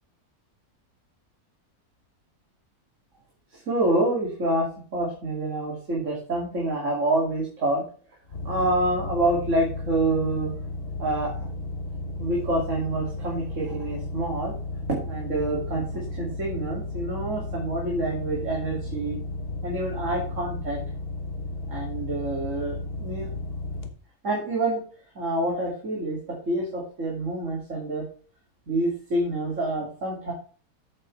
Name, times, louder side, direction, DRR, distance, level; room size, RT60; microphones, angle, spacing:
voice 1, 3.5-7.8 8.4-10.5 11.0-11.5 12.2-14.5 14.9-19.2 19.6-20.8 21.7-23.3 24.2-24.8 25.1-28.1 28.7-30.3, right 1 dB, 55° right, -2 dB, 2.9 m, -27 dB
sound 1, 8.3-23.9, left 2 dB, 45° left, 1.3 m, -34 dB
8.6 x 8.1 x 3.3 m, 0.40 s
omnidirectional pair, 1.6 m